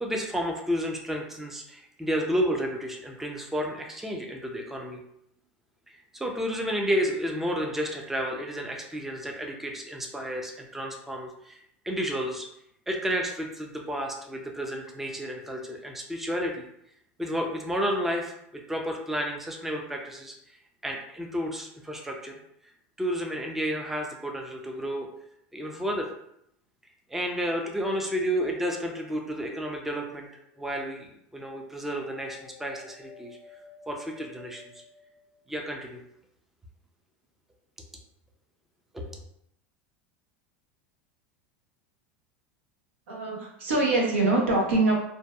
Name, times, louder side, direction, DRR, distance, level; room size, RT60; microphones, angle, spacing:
voice 1, 0.0-5.0 6.1-11.6 11.8-12.5 12.9-16.6 17.2-20.4 20.8-22.4 23.0-25.1 25.5-26.1 27.1-30.3 30.6-33.4 33.9-34.6 35.5-36.0 38.9-39.1, equal, 5° right, 1 dB, 0.4 m, -31 dB
sound 1, 29.8-30.5 31.9-35.8, left 5 dB, 55° left, 0.5 m, -52 dB
voice 2, 43.1-44.9, right 2 dB, 85° right, -2 dB, 0.8 m, -24 dB
2.6 x 2.2 x 2.2 m, 0.75 s
hypercardioid pair, 100°, 7 cm